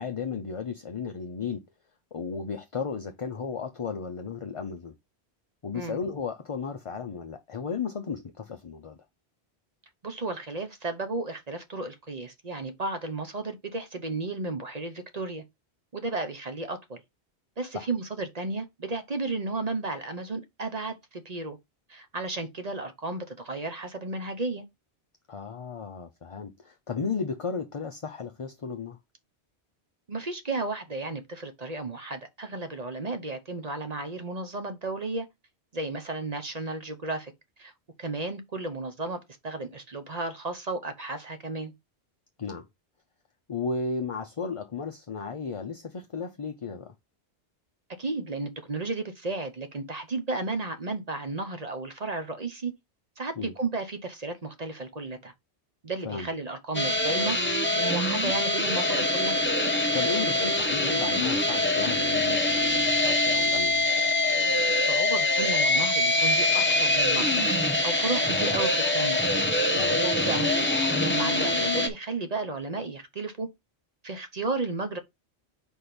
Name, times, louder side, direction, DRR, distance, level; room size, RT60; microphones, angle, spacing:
voice 1, 0.0-1.6 2.1-4.9 5.6-9.0 17.7-17.9 25.3-29.0 42.4-42.7 43.5-46.9 53.4-53.5 56.0-56.3 59.9-63.9 69.7-70.0, left 5 dB, 35° left, 0.6 m, -34 dB
voice 2, 10.0-15.4 15.9-17.0 17.6-21.6 21.9-24.6 30.1-35.3 35.7-37.3 37.6-37.7 38.0-41.7 48.0-52.7 53.2-55.3 55.8-57.4 57.7-59.4 64.7-67.4 67.8-69.2 69.7-73.5 74.0-75.0, right 3 dB, 40° right, 0.9 m, -33 dB
sound 1, 56.7-71.9, left 2 dB, 10° left, 0.8 m, -24 dB
4.6 x 4.4 x 5.0 m
omnidirectional pair, 1.1 m